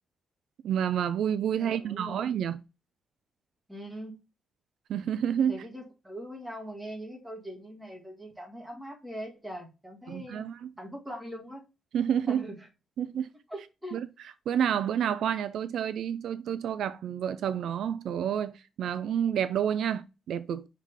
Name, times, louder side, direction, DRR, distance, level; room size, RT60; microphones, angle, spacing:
voice 1, 0.6-2.6 4.9-5.5 10.1-10.7 11.9-12.4 13.0-13.3 13.9-14.1 14.5-20.7, right 9 dB, 75° right, 0.4 m, -29 dB
voice 2, 1.6-2.2 3.7-4.2 5.5-10.5 10.8-11.6 12.3-12.7 13.5-14.0, equal, 5° right, 1.8 m, -41 dB
5.6 x 3.5 x 4.8 m
wide cardioid pair, 170°, 0 cm